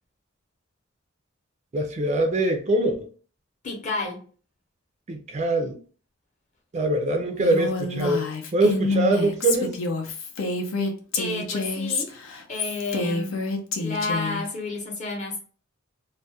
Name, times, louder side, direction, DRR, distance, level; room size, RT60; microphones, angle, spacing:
voice 1, 1.7-3.1 5.1-5.8 6.7-9.7, right 2 dB, 35° right, 0.4 m, -23 dB
voice 2, 3.6-4.2 11.1-12.1 12.5-13.3 13.8-15.5, left 3 dB, 35° left, 0.7 m, -31 dB
Female speech woman speaking, 7.4-14.4, left 3 dB, 70° left, 0.5 m, -28 dB
2.3 x 2.1 x 2.7 m
head